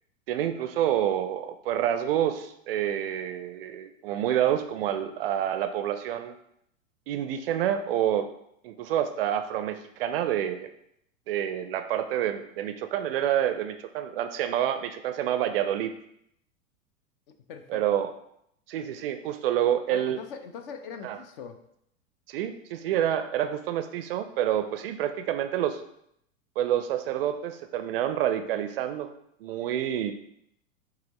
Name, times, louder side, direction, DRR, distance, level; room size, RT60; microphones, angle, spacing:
voice 1, 0.3-6.3 7.1-8.3 8.6-10.7 11.3-15.9 17.7-18.1 18.7-20.2 21.0-21.2 22.3-25.8 26.6-29.1 29.4-30.1, right 11 dB, 45° right, 9 dB, 0.4 m, -28 dB
voice 2, 17.5-17.8 19.9-21.6 22.9-23.0, left 6 dB, 45° left, 7 dB, 0.6 m, -41 dB
5.9 x 2.9 x 2.9 m, 0.74 s
figure-of-eight pair, 90°, 40 cm